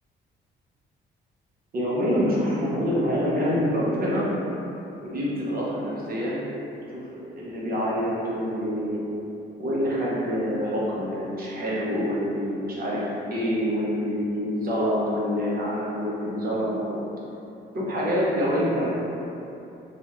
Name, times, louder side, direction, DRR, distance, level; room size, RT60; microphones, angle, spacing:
voice 1, 1.7-4.3 5.0-6.5 7.3-9.0 9.6-17.0 17.7-18.9, equal, 50° right, -6 dB, 0.8 m, -26 dB
3.0 x 2.4 x 2.9 m, 2.9 s
cardioid pair, 90°, 20 cm